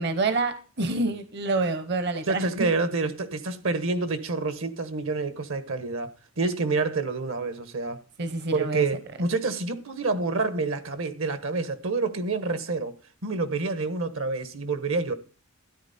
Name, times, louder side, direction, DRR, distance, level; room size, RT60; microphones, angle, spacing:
voice 1, 0.0-2.7 8.2-8.8, right 3 dB, 55° right, 0.9 m, -27 dB
voice 2, 2.3-8.0 8.5-12.9 13.2-15.1, right 3 dB, 75° right, 1.3 m, -28 dB
13.0 x 10.0 x 4.2 m
head